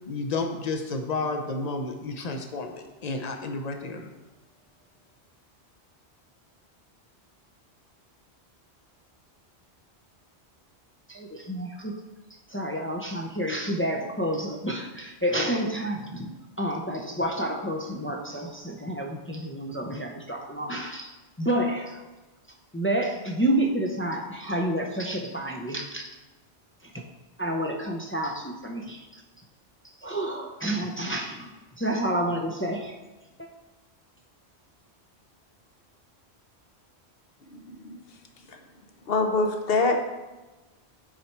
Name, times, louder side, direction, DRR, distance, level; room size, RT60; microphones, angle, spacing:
voice 1, 0.1-4.1, left 3 dB, 40° left, 5 dB, 0.8 m, -31 dB
voice 2, 11.1-11.9 12.5-16.3 16.6-21.1 21.4-22.0 22.7-26.1 27.4-29.1 30.0-31.5 31.8-32.9, right 1 dB, 15° left, 1 dB, 0.5 m, -29 dB
voice 3, 37.5-38.0 38.5-38.6 39.1-40.0, left 3 dB, 60° left, 4 dB, 1.1 m, -25 dB
9.0 x 4.2 x 4.5 m, 1.1 s
omnidirectional pair, 1.1 m